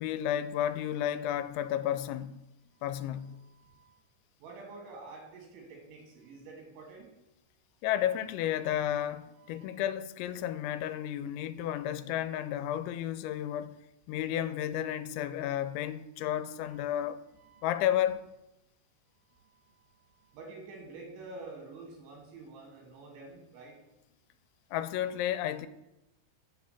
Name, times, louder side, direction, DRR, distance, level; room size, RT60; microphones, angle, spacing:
voice 1, 0.0-2.4 2.8-3.4 7.8-13.8 14.1-17.2 17.6-18.2 24.7-25.7, left 11 dB, 90° left, 2.9 m, -32 dB
voice 2, 3.3-4.0 4.4-7.1 8.7-9.0 9.4-9.7 11.4-11.5 14.4-14.5 16.7-16.8 17.3-17.7 19.4-19.5 20.2-23.8, right 3 dB, 85° right, 5.2 m, -49 dB
9.3 x 6.5 x 8.3 m
omnidirectional pair, 5.2 m